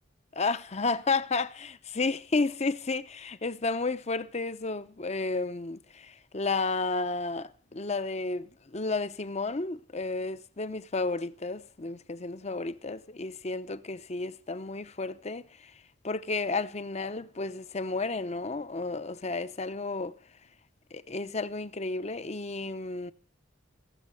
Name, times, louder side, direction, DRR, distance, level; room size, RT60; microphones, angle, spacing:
voice 1, 0.3-15.7 16.0-20.2 20.9-23.1, left 3 dB, 35° left, 0.7 m, -32 dB
17.0 x 7.4 x 9.8 m
head